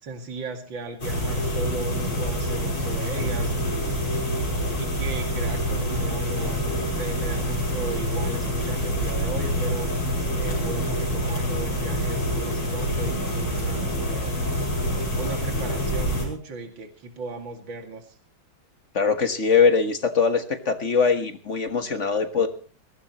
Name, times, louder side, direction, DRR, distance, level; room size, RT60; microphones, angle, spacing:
voice 1, 0.0-4.0 4.8-9.9 10.3-14.5 15.1-18.2, right 3 dB, 70° right, 4 dB, 3.1 m, -36 dB
sound 1, 1.0-16.3, equal, 90° left, 6.5 m, -26 dB
voice 2, 18.9-22.5, left 5 dB, 40° left, 7 dB, 1.6 m, -22 dB
22.0 x 17.0 x 3.1 m, 0.39 s
omnidirectional pair, 2.2 m